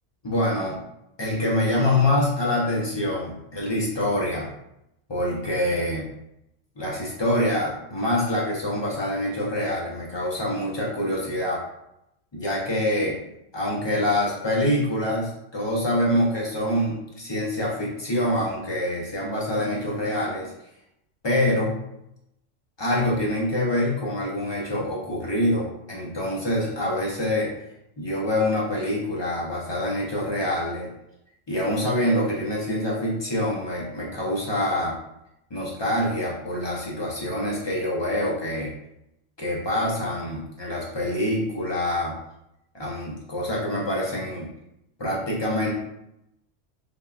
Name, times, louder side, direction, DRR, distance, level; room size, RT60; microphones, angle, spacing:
voice 1, 0.2-0.8 1.2-4.5 5.1-6.1 6.8-11.6 12.3-13.2 13.5-20.5 21.2-21.8 22.8-27.5 28.0-30.9 31.5-35.0 35.5-38.7 39.4-42.1 42.7-44.5 45.0-45.8, left 1 dB, 45° left, -4 dB, 0.3 m, -25 dB
3.5 x 2.3 x 2.2 m, 0.82 s
omnidirectional pair, 1.3 m